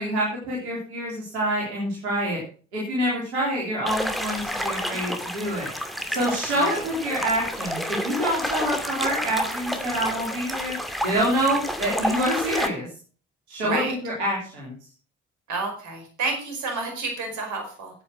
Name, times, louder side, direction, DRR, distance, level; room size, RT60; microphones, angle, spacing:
voice 1, 0.0-2.4 2.7-5.7 6.1-10.7 11.0-12.9 13.5-14.7, right 1 dB, 80° right, -5 dB, 3.8 m, -26 dB
sound 1, 3.9-12.7, equal, ahead, 2.4 m, -30 dB
voice 2, 15.5-17.9, right 3 dB, 60° right, 3 dB, 5.1 m, -29 dB
10.0 x 9.1 x 6.5 m, 0.40 s
figure-of-eight pair, 40°, 33 cm